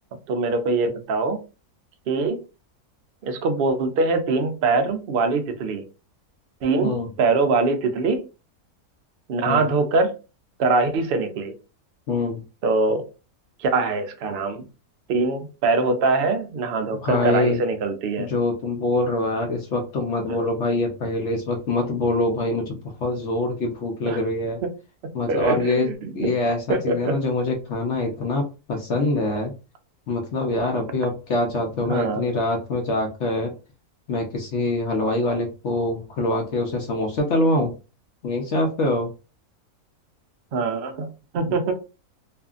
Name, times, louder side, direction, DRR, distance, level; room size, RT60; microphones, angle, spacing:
voice 1, 0.3-1.4 2.1-2.4 3.2-5.8 6.6-8.3 9.3-10.1 10.6-11.6 12.6-13.0 13.6-14.7 15.1-18.3 20.3-20.5 24.1-24.2 25.3-26.3 26.7-27.2 31.9-32.3 40.5-41.7, right 3 dB, 85° right, 0.5 m, -23 dB
voice 2, 12.1-12.4 17.0-17.6 18.2-24.6 25.1-25.9 26.1-29.5 30.1-33.5 34.1-37.7 38.2-39.1, left 2 dB, 60° left, 0.8 m, -24 dB
2.7 x 2.5 x 2.3 m
omnidirectional pair, 1.6 m